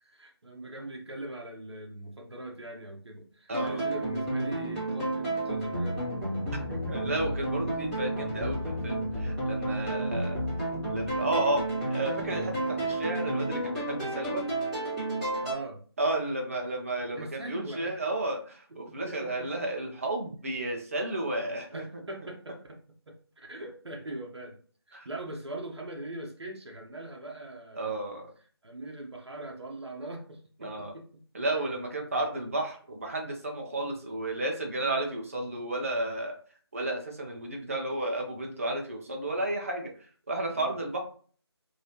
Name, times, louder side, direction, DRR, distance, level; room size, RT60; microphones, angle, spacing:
voice 1, 0.0-6.1 15.4-15.8 17.1-17.9 18.7-19.5 21.3-22.8 23.1-24.6 24.9-28.0 28.6-31.1 40.5-40.7, right 1 dB, 75° right, 0 dB, 0.8 m, -41 dB
sound 1, 3.5-15.5, right 1 dB, ahead, 1.2 m, -31 dB
voice 2, 3.5-3.9 6.7-10.4 10.9-11.6 11.9-14.4 16.0-21.9 24.9-25.1 27.7-28.3 30.6-30.9 31.3-36.4 36.7-39.9 40.3-41.0, right 2 dB, 30° right, 2 dB, 0.6 m, -32 dB
3.1 x 2.8 x 2.7 m, 0.44 s
figure-of-eight pair, 165°, 14 cm